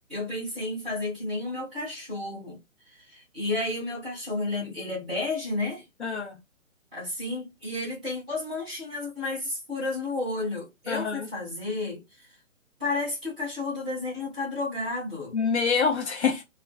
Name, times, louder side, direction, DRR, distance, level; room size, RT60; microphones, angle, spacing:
voice 1, 0.1-2.6 3.0-5.8 6.9-12.0 12.8-15.4, left 2 dB, 5° right, 0.5 m, -32 dB
voice 2, 6.0-6.4 10.9-11.3 15.3-16.4, left 5 dB, 55° left, 0.9 m, -26 dB
2.4 x 2.4 x 2.3 m
figure-of-eight pair, 135°, 41 cm